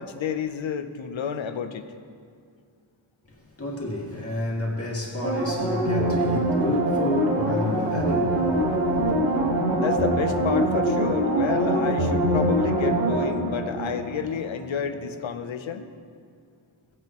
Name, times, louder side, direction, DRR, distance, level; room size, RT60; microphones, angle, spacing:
voice 1, 0.0-1.9 9.7-15.9, left 7 dB, 85° left, 8 dB, 0.8 m, -30 dB
voice 2, 3.3-9.2, left 1 dB, 30° left, -3 dB, 2.1 m, -30 dB
sound 1, 5.2-14.6 15.0-15.1, right 1 dB, 80° right, 1.6 m, -24 dB
18.0 x 8.7 x 3.0 m, 2.2 s
wide cardioid pair, 135°, 46 cm